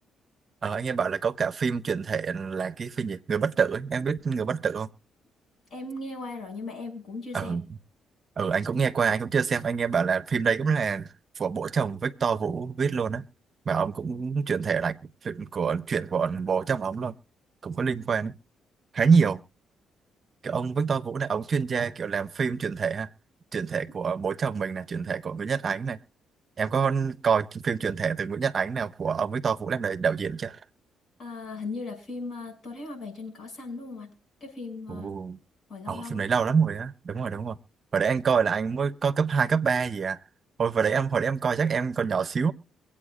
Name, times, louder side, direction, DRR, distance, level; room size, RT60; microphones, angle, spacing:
voice 1, 0.6-4.9 7.3-7.6 8.4-13.3 13.7-17.2 17.6-18.3 18.9-19.4 20.4-23.1 23.5-26.0 26.6-30.6 34.9-35.4 35.9-37.6 37.9-40.2 40.6-42.5, right 6 dB, 45° right, 0.6 m, -26 dB
voice 2, 5.7-7.6 31.2-34.1 34.4-35.1 35.7-36.3, left 3 dB, 55° left, 6.5 m, -37 dB
24.5 x 8.5 x 2.4 m
cardioid pair, 90°, 0 cm